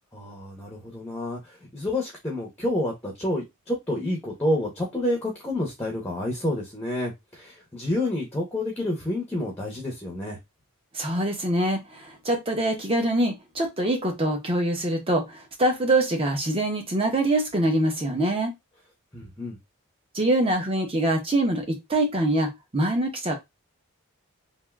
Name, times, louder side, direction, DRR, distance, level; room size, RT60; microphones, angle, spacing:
voice 1, 0.1-10.4 19.1-19.6, left 1 dB, 10° left, 0.7 m, -29 dB
voice 2, 10.9-18.5 20.1-23.4, right 1 dB, 25° right, 0.7 m, -24 dB
3.5 x 2.5 x 2.3 m
head